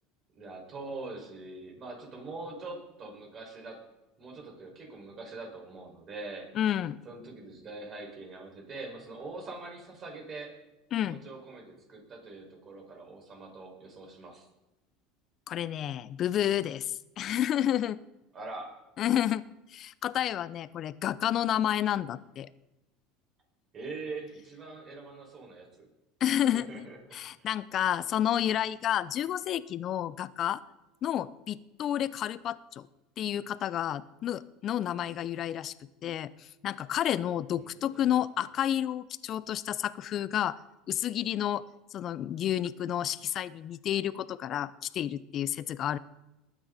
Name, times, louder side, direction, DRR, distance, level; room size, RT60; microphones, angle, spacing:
voice 1, 0.3-3.8 4.2-6.5 7.1-10.5 11.0-14.5 18.3-18.7 23.7-25.9 26.5-27.0 27.4-27.5 37.6-38.2, right 3 dB, 40° right, 1 dB, 5.5 m, -43 dB
voice 2, 6.5-7.0 10.9-11.2 15.5-18.0 19.0-19.4 19.7-22.5 26.2-30.6 31.0-32.9 33.2-35.7 36.0-40.6 40.9-41.6 41.9-46.0, left 11 dB, 45° left, 17 dB, 0.6 m, -30 dB
21.0 x 9.1 x 4.2 m, 0.96 s
supercardioid pair, 95°, 0 cm